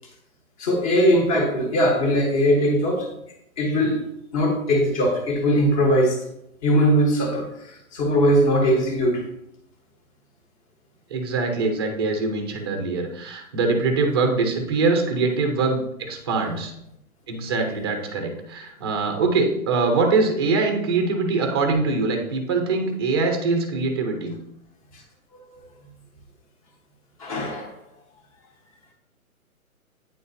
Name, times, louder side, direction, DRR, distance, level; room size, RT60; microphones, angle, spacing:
voice 1, 0.6-3.1 3.6-4.1 4.3-6.2 6.6-9.2 27.2-27.7, equal, 25° left, 1 dB, 1.2 m, -20 dB
voice 2, 11.1-16.7 17.3-24.3, right 3 dB, 20° right, 4 dB, 0.6 m, -23 dB
9.0 x 4.1 x 2.7 m, 0.77 s
hypercardioid pair, 155°, 43 cm